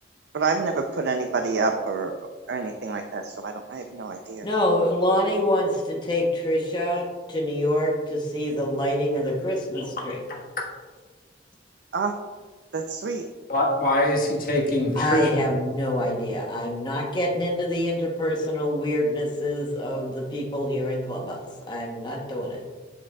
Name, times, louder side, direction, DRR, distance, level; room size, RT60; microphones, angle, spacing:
voice 1, 0.3-2.1 2.5-4.5 11.9-12.1 12.7-13.2, right 4 dB, 75° right, 4 dB, 0.5 m, -27 dB
voice 2, 4.4-10.2 15.0-21.4 21.7-22.6, left 1 dB, 25° left, -1 dB, 0.9 m, -26 dB
voice 3, 13.5-15.5, left 1 dB, 50° left, -2 dB, 1.4 m, -23 dB
7.2 x 7.1 x 2.3 m, 1.4 s
head